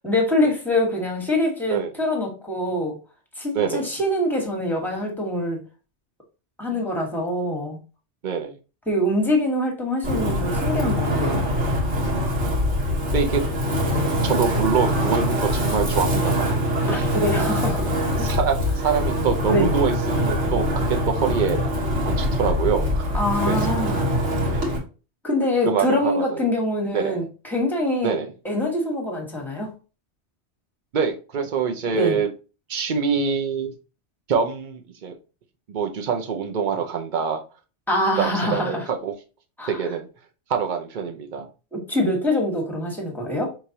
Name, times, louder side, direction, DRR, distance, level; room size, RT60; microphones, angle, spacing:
voice 1, 0.0-2.9 3.4-5.6 6.6-7.8 8.9-11.5 13.9-14.1 16.9-18.2 19.5-19.7 23.1-24.2 25.2-28.1 28.4-29.7 31.9-32.2 37.9-38.8 39.6-39.8 41.7-43.5, left 1 dB, ahead, 1.2 m, -24 dB
voice 2, 3.5-3.9 6.7-7.1 8.2-8.6 13.1-13.4 14.2-17.1 18.1-21.7 22.0-23.1 23.4-23.9 24.5-24.7 25.7-26.4 26.9-27.2 28.0-28.3 30.9-32.3 32.7-33.7 34.3-35.2 35.7-37.4 38.2-39.1 39.7-40.1 40.5-41.5, right 6 dB, 50° right, 0.7 m, -25 dB
Wind, 10.0-24.8, equal, 80° right, 1.8 m, -23 dB
4.9 x 3.1 x 2.8 m
omnidirectional pair, 1.2 m